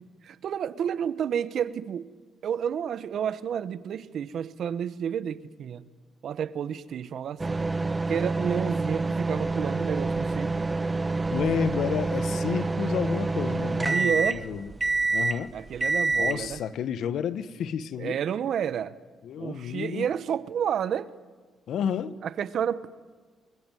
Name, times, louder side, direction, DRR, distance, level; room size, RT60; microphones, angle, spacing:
voice 1, 0.0-2.1 2.4-5.8 6.2-10.7 13.9-14.4 15.5-16.6 18.0-18.9 19.4-21.1 22.2-22.9, right 8 dB, 65° right, 1.2 m, -30 dB
sound 1, 7.4-16.6, right 3 dB, 20° right, 0.9 m, -27 dB
voice 2, 11.3-14.7 15.1-15.5 16.2-18.2 19.2-20.1 21.7-22.1, left 8 dB, 70° left, 1.3 m, -31 dB
24.5 x 23.5 x 9.3 m
cardioid pair, 90°, 0 cm